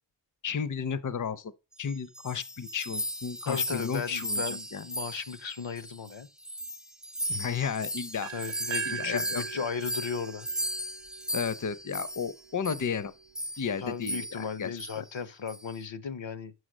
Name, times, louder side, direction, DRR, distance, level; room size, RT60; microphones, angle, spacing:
voice 1, 0.4-1.5 1.8-4.9 7.3-8.3 8.9-9.7 11.3-13.1 13.6-15.0, left 7 dB, 45° left, 0.6 m, -33 dB
sound 1, 1.9-6.1 6.4-12.3 12.6-12.9 13.3-13.7 14.0-14.5 14.8-15.0 15.5-15.8, equal, ahead, 0.4 m, -36 dB
voice 2, 3.5-6.3 8.3-10.5 13.8-16.5, left 6 dB, 80° left, 0.8 m, -36 dB
sound 2, 8.2-12.1, right 9 dB, 80° right, 0.5 m, -40 dB
6.6 x 6.3 x 6.3 m
wide cardioid pair, 45°, 45 cm